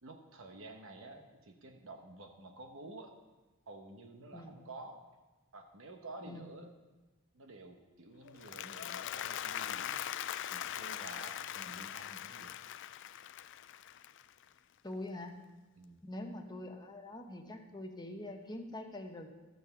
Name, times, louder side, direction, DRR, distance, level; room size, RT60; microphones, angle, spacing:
voice 1, 0.0-3.1 3.7-5.0 5.5-6.7 7.3-12.5 15.8-16.0, right 2 dB, 65° right, 4 dB, 1.0 m, -51 dB
Applause, 8.3-14.6, left 11 dB, 60° left, 0.4 m, -41 dB
voice 2, 14.8-15.3 16.0-19.3, left 1 dB, 20° left, 3 dB, 1.0 m, -44 dB
12.5 x 6.7 x 6.8 m, 1.2 s
head